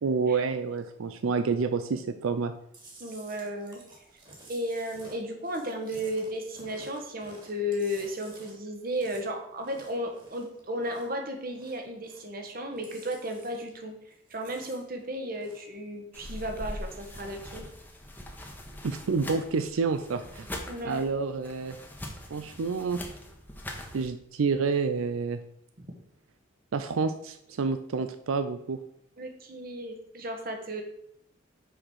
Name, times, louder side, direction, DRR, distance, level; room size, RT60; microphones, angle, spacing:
voice 1, 0.0-2.5 18.8-20.5 20.8-21.8 22.3-23.0 23.9-25.4 26.7-28.8, right 4 dB, 90° right, 9 dB, 0.5 m, -28 dB
Chewing mastication, 2.7-11.2 11.5-12.4 12.7-13.8 14.1-15.8 16.1-16.6, right 2 dB, 25° right, 2.0 m, -52 dB
voice 2, 3.0-3.8 4.5-13.9 14.3-17.7 20.7-21.0 29.2-30.8, equal, 45° right, 4 dB, 1.3 m, -34 dB
sound 1, 16.1-24.1, left 1 dB, 10° left, 1.0 m, -42 dB
6.2 x 5.0 x 6.2 m, 0.75 s
head